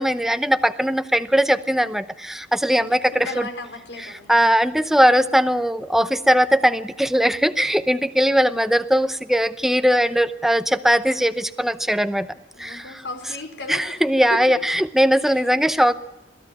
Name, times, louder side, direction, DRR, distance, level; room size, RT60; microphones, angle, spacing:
voice 1, 0.0-3.5 4.3-12.3 12.6-13.0 13.7-15.9, equal, ahead, 11 dB, 0.8 m, -20 dB
voice 2, 2.9-4.3 12.5-13.9 14.3-14.6 15.3-15.6, left 3 dB, 80° left, 5 dB, 4.4 m, -35 dB
22.0 x 15.0 x 9.8 m, 0.89 s
head